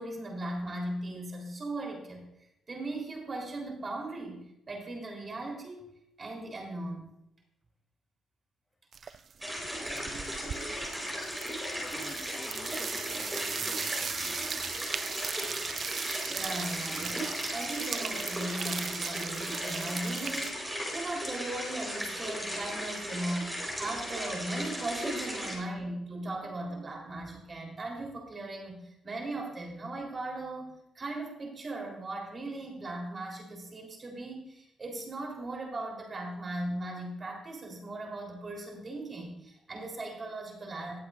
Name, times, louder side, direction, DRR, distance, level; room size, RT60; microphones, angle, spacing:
voice 1, 0.0-2.2 2.7-4.4 4.7-5.9 6.2-7.1 9.0-9.1 16.3-41.0, right 2 dB, 35° right, 1 dB, 3.7 m, -38 dB
sound 1, 8.9-9.3 9.6-20.5, right 7 dB, 50° right, 0.3 m, -38 dB
sound 2, 9.4-25.5, equal, 5° right, 4.3 m, -36 dB
voice 2, 9.8-10.8 11.8-14.8 25.5-25.6, left 2 dB, 25° left, 3 dB, 1.9 m, -48 dB
19.5 x 7.9 x 2.5 m, 0.81 s
cardioid pair, 90°, 0 cm